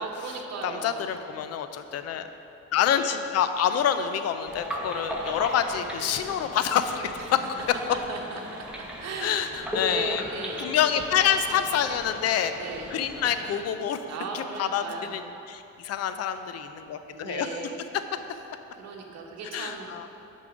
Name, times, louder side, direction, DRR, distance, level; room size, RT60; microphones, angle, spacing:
voice 1, 0.0-1.1 8.1-9.3 9.8-10.6 12.6-12.9 14.1-15.2 17.0-17.8 18.7-19.9, right 4 dB, 60° right, 0 dB, 1.1 m, -37 dB
voice 2, 0.6-2.3 2.7-7.4 9.2-10.2 10.6-12.5 12.9-14.0 14.3-17.5 19.5-20.1, left 9 dB, 55° left, 10 dB, 0.5 m, -27 dB
sound 1, 4.5-13.6, equal, 5° right, 1.1 m, -37 dB
6.7 x 5.5 x 5.0 m, 2.8 s
cardioid pair, 100°, 30 cm